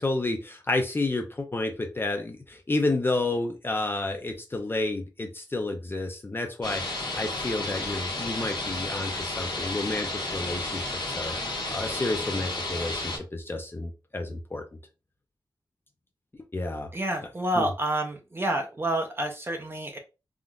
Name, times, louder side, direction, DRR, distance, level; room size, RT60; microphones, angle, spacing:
voice 1, 0.0-11.3 11.7-14.6 16.5-16.9 17.6-17.7, left 2 dB, 25° left, 4 dB, 0.5 m, -30 dB
sound 1, 6.6-13.2, left 2 dB, 65° left, 1.3 m, -32 dB
voice 2, 16.9-20.0, right 1 dB, 25° right, 2 dB, 0.5 m, -28 dB
3.6 x 2.5 x 2.2 m, 0.29 s
wide cardioid pair, 80°, 8 cm